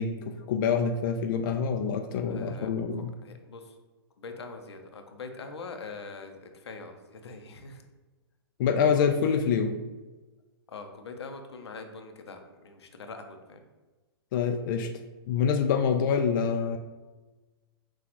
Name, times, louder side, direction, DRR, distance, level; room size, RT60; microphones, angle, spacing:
voice 1, 0.0-3.1 8.6-9.8 14.3-14.9 15.3-16.8, left 6 dB, 50° left, 5 dB, 0.4 m, -26 dB
voice 2, 2.3-2.7 3.2-3.7 4.2-7.8 10.7-13.6, left 4 dB, 90° left, 5 dB, 0.6 m, -43 dB
6.1 x 2.3 x 3.0 m, 1.2 s
hypercardioid pair, 130°, 13 cm